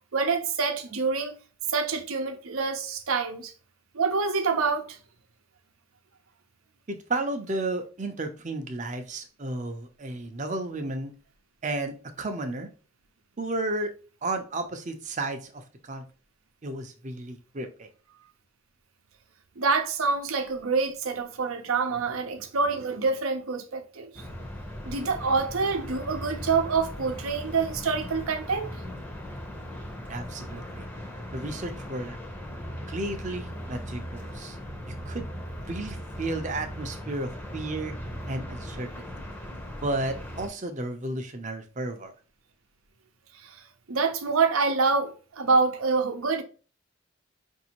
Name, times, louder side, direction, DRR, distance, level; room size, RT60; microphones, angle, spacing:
voice 1, 0.1-1.4 1.7-3.5 3.9-5.0 19.6-24.1 24.8-28.7 43.4-43.6 43.9-46.4, right 4 dB, 85° right, 0.7 m, -26 dB
voice 2, 6.9-11.1 11.6-12.7 13.4-13.9 14.2-15.5 15.8-16.0 16.6-17.9 30.1-30.9 31.3-32.2 32.9-34.6 34.9-35.3 35.6-37.9 38.3-38.9 39.8-42.1, right 2 dB, 35° right, 0.6 m, -33 dB
sound 1, 24.2-40.5, equal, 10° left, 0.6 m, -38 dB
5.0 x 2.6 x 2.9 m
head